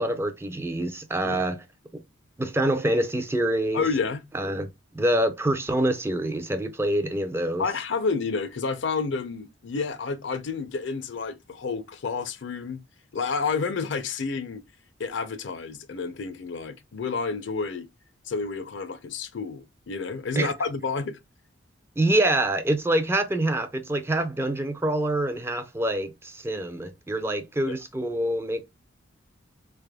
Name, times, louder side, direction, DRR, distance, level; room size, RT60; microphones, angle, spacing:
voice 1, 0.0-1.6 2.4-3.8 4.3-4.7 4.9-7.7 20.4-20.5 22.0-28.6, right 1 dB, 10° right, 0.3 m, -26 dB
voice 2, 3.7-4.2 7.6-12.8 13.1-14.6 15.0-17.9 18.3-21.2 27.7-27.8, left 4 dB, 60° left, 0.5 m, -30 dB
4.1 x 3.4 x 2.2 m
head